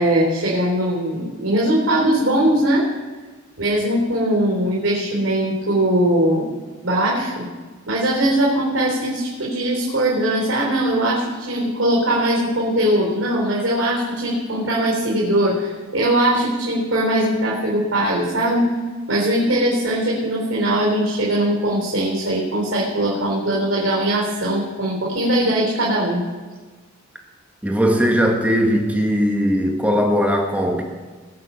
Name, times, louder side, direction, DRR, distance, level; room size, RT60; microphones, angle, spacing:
voice 1, 0.0-2.9 3.6-6.6 6.8-7.5 7.9-18.7 19.1-26.2, right 1 dB, 75° right, -5 dB, 4.1 m, -20 dB
voice 2, 27.6-30.8, equal, 5° right, 2 dB, 1.6 m, -19 dB
21.0 x 7.3 x 5.8 m, 1.4 s
head